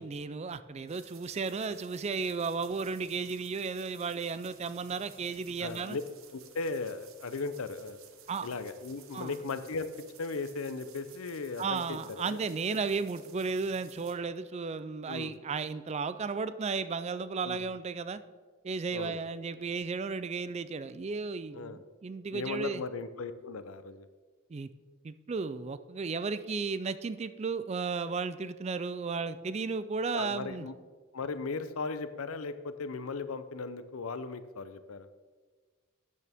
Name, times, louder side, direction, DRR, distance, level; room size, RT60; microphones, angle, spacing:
voice 1, 0.0-6.0 8.3-8.5 9.1-9.4 11.6-18.2 18.6-22.8 24.5-24.7 25.0-30.7, right 4 dB, 30° right, 14 dB, 0.4 m, -34 dB
Impact Sprinklers on Potatoes, 0.9-14.1, right 8 dB, 75° right, 1.0 m, -56 dB
voice 2, 5.6-6.0 6.3-8.0 8.4-9.9 10.2-12.8 15.1-15.4 17.4-17.7 18.9-19.2 21.5-21.8 22.3-24.0 30.1-30.7 31.1-35.1, left 4 dB, 85° left, 12 dB, 0.6 m, -37 dB
12.0 x 8.4 x 3.5 m, 1.5 s
head